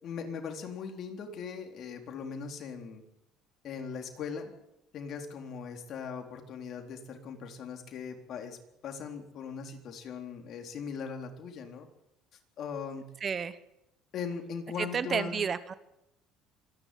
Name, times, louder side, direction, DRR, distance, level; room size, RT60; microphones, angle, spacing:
voice 1, 0.0-3.0 3.6-4.5 4.9-8.6 8.8-11.9 12.6-13.1 14.1-15.5, left 6 dB, 55° left, 4 dB, 3.8 m, -39 dB
voice 2, 13.2-13.6 14.8-15.7, right 6 dB, 35° right, 13 dB, 1.2 m, -31 dB
25.5 x 11.0 x 9.4 m, 0.88 s
cardioid pair, 110°, 0 cm